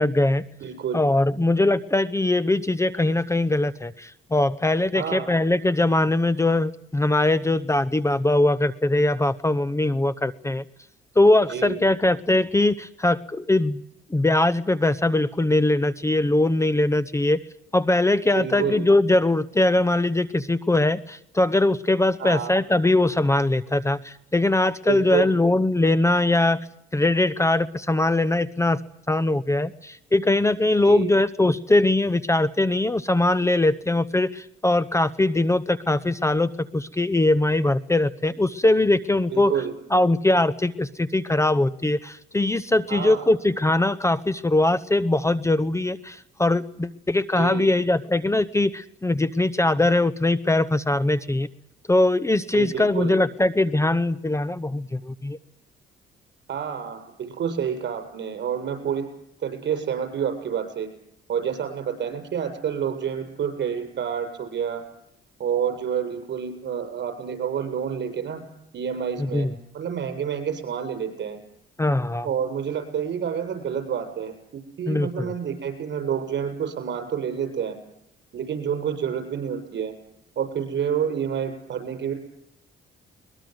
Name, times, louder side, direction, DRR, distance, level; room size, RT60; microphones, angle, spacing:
voice 1, 0.0-0.5 0.9-10.6 11.2-13.8 14.1-17.4 17.7-26.6 26.9-28.8 29.1-39.5 39.9-51.5 51.9-55.4 69.2-69.5 71.8-72.3 74.9-75.3, left 2 dB, 15° left, 16 dB, 0.8 m, -21 dB
voice 2, 0.6-1.0 4.9-5.3 11.5-11.8 18.3-18.8 22.2-22.5 24.9-25.3 30.8-31.1 39.3-39.7 42.9-43.3 47.4-47.7 52.5-53.2 56.5-59.0 59.4-60.9 61.3-64.8 65.4-68.4 68.7-69.5 69.7-71.4 72.2-77.8 78.3-79.9 80.4-82.1, right 8 dB, 65° right, 8 dB, 7.3 m, -28 dB
22.5 x 21.5 x 7.9 m, 0.77 s
cardioid pair, 90°, 20 cm